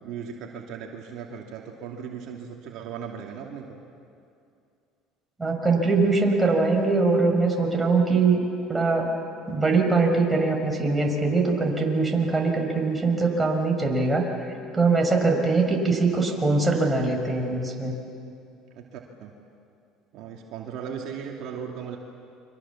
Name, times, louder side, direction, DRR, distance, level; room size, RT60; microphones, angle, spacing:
voice 1, 0.0-3.8 18.7-19.3 20.1-22.0, right 7 dB, 65° right, 0 dB, 2.6 m, -37 dB
voice 2, 5.4-8.4 8.7-9.1 9.5-14.3 14.7-17.9, right 3 dB, 15° right, 1 dB, 5.8 m, -22 dB
29.5 x 24.5 x 7.3 m, 2.5 s
supercardioid pair, 85°, 0 cm